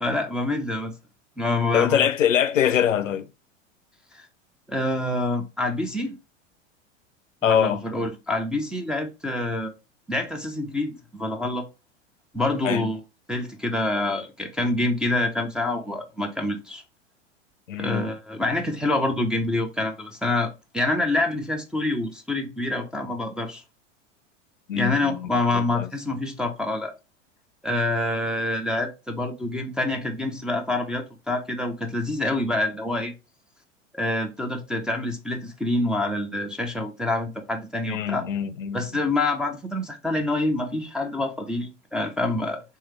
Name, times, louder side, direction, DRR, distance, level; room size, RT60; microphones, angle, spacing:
voice 1, 0.0-0.9 1.4-2.1 4.1-4.3 4.7-6.1 7.4-9.7 10.1-11.6 12.3-13.0 13.3-16.8 17.8-23.6 24.7-26.9 27.6-33.1 33.9-38.2 38.7-42.6, left 2 dB, ahead, 0.4 m, -26 dB
voice 2, 1.7-3.3 7.4-7.8 12.6-12.9 17.7-18.1 24.7-25.3 25.5-25.9 37.9-38.8, left 9 dB, 85° left, 0.5 m, -23 dB
3.3 x 3.1 x 3.2 m
figure-of-eight pair, 90°, 37 cm